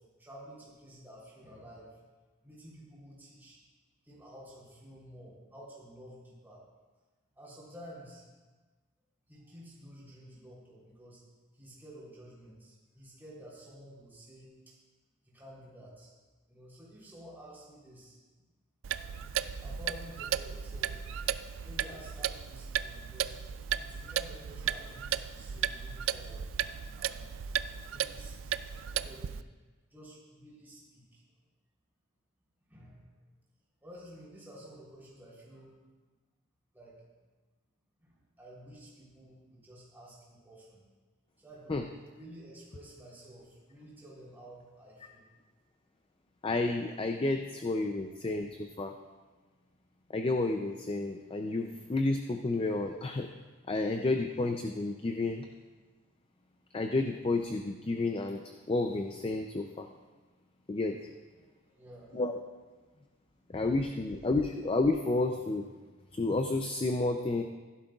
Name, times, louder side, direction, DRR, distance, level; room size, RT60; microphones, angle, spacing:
voice 1, 0.0-2.0 2.4-3.6 4.0-6.6 7.3-8.3 9.3-11.2 11.5-14.5 15.2-16.1 16.5-18.1 19.6-21.0 21.6-23.3 23.8-26.5 27.0-27.3 27.8-29.4 29.9-31.2 32.7-33.1 33.8-35.8 36.7-37.0 38.0-40.8 41.4-41.8 42.1-45.2 61.6-62.2, equal, 10° right, -6 dB, 3.3 m, -51 dB
Clock, 18.8-29.4, right 9 dB, 60° right, 0.3 m, -35 dB
voice 2, 46.4-48.9 50.1-53.3 53.7-55.5 56.7-58.4 58.7-59.9 60.7-61.0 62.1-62.3 63.5-65.6 66.1-67.4, left 2 dB, 25° left, 5 dB, 0.4 m, -30 dB
16.0 x 11.5 x 2.4 m, 1.3 s
head